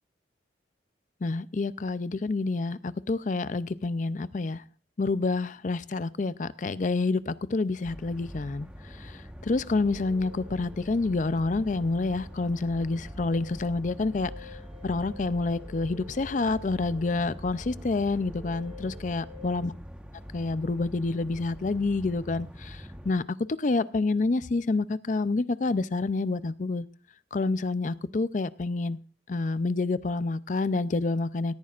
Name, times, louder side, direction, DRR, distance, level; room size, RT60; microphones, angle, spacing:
voice 1, 1.2-4.6 5.0-19.7 20.3-26.9 27.3-29.0 29.3-31.5, left 3 dB, 45° left, 16 dB, 0.5 m, -28 dB
sound 1, 7.8-23.1, equal, 5° right, 1.2 m, -44 dB
sound 2, 9.6-19.7, left 3 dB, 40° right, 3.6 m, -51 dB
18.0 x 14.0 x 2.5 m, 0.36 s
head